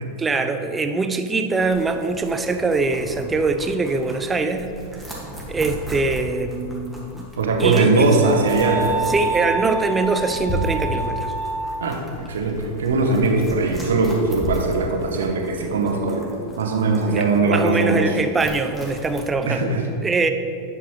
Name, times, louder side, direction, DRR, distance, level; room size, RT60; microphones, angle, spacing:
voice 1, 0.2-4.7 5.5-7.3 7.6-8.1 9.1-11.3 17.1-19.7 20.0-20.3, right 3 dB, 15° right, 8 dB, 0.5 m, -23 dB
sound 1, 1.6-19.3, equal, ahead, 1.5 m, -35 dB
voice 2, 7.4-8.9 11.8-12.0 12.3-16.3 16.6-18.1 19.5-19.8, right 3 dB, 65° right, 3 dB, 0.9 m, -20 dB
sound 2, 8.2-11.8, right 3 dB, 45° right, 1.6 m, -27 dB
10.0 x 6.0 x 3.0 m, 2.5 s
figure-of-eight pair, 90°, 0 cm